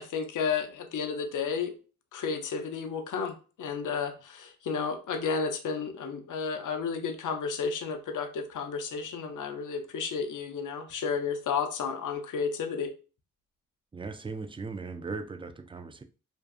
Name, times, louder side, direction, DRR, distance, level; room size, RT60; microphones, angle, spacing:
voice 1, 0.0-1.7 2.1-12.9, left 5 dB, 65° left, 0.6 m, -32 dB
voice 2, 13.9-16.0, right 4 dB, 15° right, 0.3 m, -38 dB
2.6 x 2.3 x 2.3 m
supercardioid pair, 45°, 33 cm